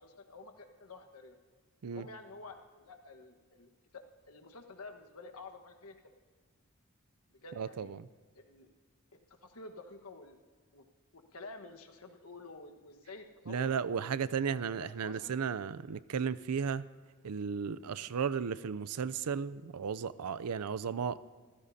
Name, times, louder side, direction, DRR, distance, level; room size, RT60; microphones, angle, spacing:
voice 1, 0.0-1.3 1.8-6.0 7.3-7.9 8.3-8.7 9.4-10.4 10.7-10.9 11.1-13.7 14.4-15.4 17.9-18.0, left 3 dB, 75° left, 5 dB, 1.4 m, -50 dB
voice 2, 7.6-8.0 13.5-16.8 17.2-21.2, right 6 dB, 85° right, 17 dB, 0.5 m, -34 dB
26.0 x 15.0 x 2.8 m, 1.5 s
head